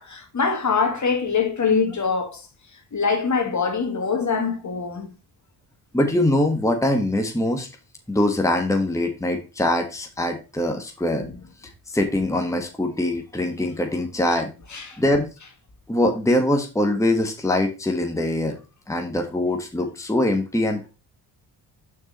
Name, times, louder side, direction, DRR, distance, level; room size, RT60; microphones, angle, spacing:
voice 1, 0.0-2.4 2.9-5.1 11.2-11.3 14.7-15.0, left 5 dB, 40° left, 2.0 m, -23 dB
voice 2, 5.9-7.7 8.1-11.2 11.9-14.5 15.0-15.3 15.9-18.6 18.9-20.9, left 1 dB, 5° left, 1.4 m, -23 dB
6.3 x 4.7 x 4.1 m
cardioid pair, 75°, 44 cm